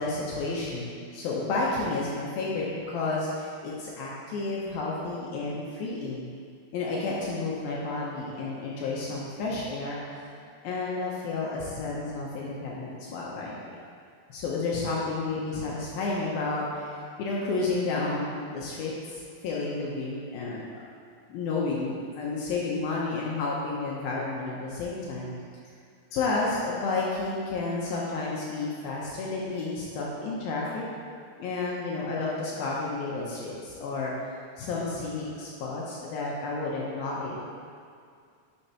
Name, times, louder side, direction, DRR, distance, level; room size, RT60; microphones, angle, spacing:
voice 1, 0.0-6.3 6.7-10.2 10.6-13.8 14.3-20.7 21.3-25.3 26.1-30.8 31.4-37.4, left 3 dB, 75° left, -4 dB, 2.4 m, -31 dB
9.8 x 6.4 x 2.9 m, 2.2 s
omnidirectional pair, 4.8 m